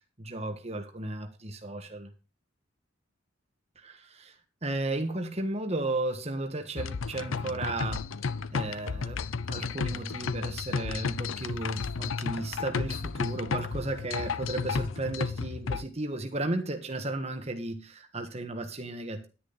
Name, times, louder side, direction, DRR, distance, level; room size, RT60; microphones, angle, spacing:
voice 1, 0.2-2.1 3.7-19.3, right 2 dB, 30° right, 1.5 m, -34 dB
sound 1, 6.8-15.8, left 5 dB, 85° left, 0.6 m, -33 dB
10.5 x 10.0 x 4.1 m
head